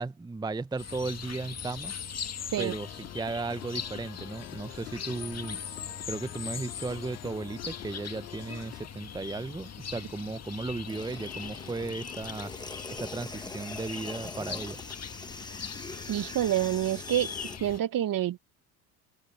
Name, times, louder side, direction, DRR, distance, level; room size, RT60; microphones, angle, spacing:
voice 1, 0.0-1.9 2.6-5.6 6.0-12.5 12.9-14.8, right 3 dB, 10° right, 0.7 m, -35 dB
sound 1, 0.8-17.8, left 7 dB, 35° left, 1.9 m, -41 dB
sound 2, 2.5-8.9, left 17 dB, 80° left, 4.0 m, -47 dB
sound 3, 10.9-17.6, left 2 dB, 10° left, 1.4 m, -43 dB
voice 2, 16.1-17.3 17.6-18.4, right 12 dB, 45° right, 1.4 m, -27 dB
hypercardioid pair, 65°, 47 cm